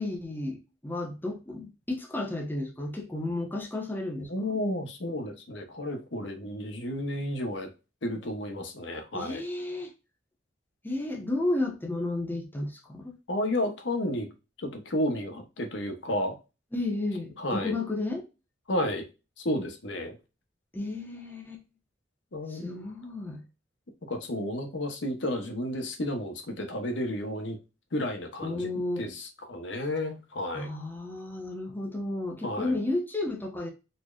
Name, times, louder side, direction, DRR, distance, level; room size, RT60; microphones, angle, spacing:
voice 1, 0.0-4.6 9.1-9.9 10.8-13.1 16.7-18.3 20.7-21.6 22.5-23.4 28.4-29.1 30.5-33.7, left 2 dB, 10° left, 0.9 m, -32 dB
voice 2, 4.3-7.7 8.0-9.4 13.3-14.3 14.6-16.4 17.4-17.8 18.7-19.1 19.4-20.2 22.3-22.8 24.1-27.6 27.9-28.7 29.0-30.7 32.4-32.8, left 1 dB, 70° left, 0.9 m, -32 dB
4.2 x 3.2 x 2.4 m
head